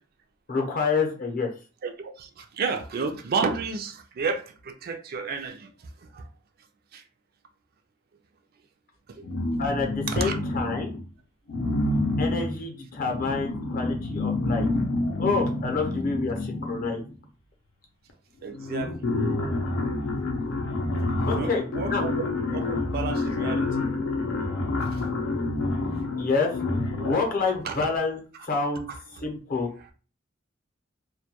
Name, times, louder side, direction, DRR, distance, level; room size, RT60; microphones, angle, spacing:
voice 1, 0.5-1.5 9.6-10.9 12.2-14.7 15.2-17.0 21.3-21.6 21.9-22.0 26.2-26.5 27.0-28.2 28.5-28.9 29.2-29.7, left 4 dB, 45° left, 0.6 m, -27 dB
voice 2, 1.8-5.7 6.1-6.3 6.9-7.0 9.1-9.2 10.1-10.4 18.4-19.1 21.3-23.7 24.9-25.0 27.0-27.2 27.6-27.9, right 5 dB, 50° right, 0.4 m, -31 dB
sound 1, 9.2-11.0 11.5-17.2 18.1-18.2 18.5-27.3, left 2 dB, 85° left, 0.5 m, -28 dB
2.2 x 2.1 x 2.8 m
head